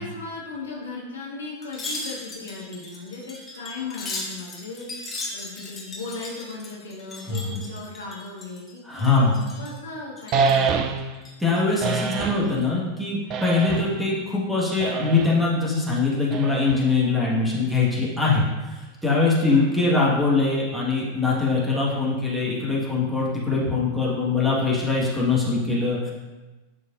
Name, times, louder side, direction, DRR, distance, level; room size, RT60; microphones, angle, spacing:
voice 1, 0.0-10.9 19.5-19.8, left 3 dB, 70° left, -4 dB, 1.6 m, -37 dB
Wind chime, 1.6-8.7 9.0-9.8 10.2-10.7 11.1-12.1 12.4-12.6, left 2 dB, 15° left, 1.4 m, -37 dB
voice 2, 8.8-9.4 11.4-26.1, left 3 dB, 5° right, -5 dB, 1.7 m, -22 dB
sound 1, 10.3-11.2 11.8-12.5 13.3-14.0 14.8-15.4 16.3-17.0, right 5 dB, 35° right, 0.5 m, -26 dB
11.0 x 4.0 x 2.6 m, 1.1 s
figure-of-eight pair, 90°, 0 cm